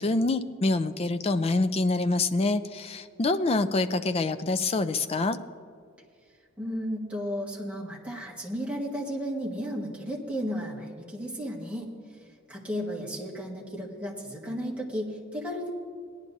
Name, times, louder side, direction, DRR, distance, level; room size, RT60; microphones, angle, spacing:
voice 1, 0.0-5.4, left 2 dB, 30° left, 10 dB, 0.4 m, -26 dB
voice 2, 6.6-11.9 12.5-15.7, equal, 5° right, -4 dB, 1.6 m, -34 dB
18.5 x 10.5 x 2.7 m, 2.1 s
head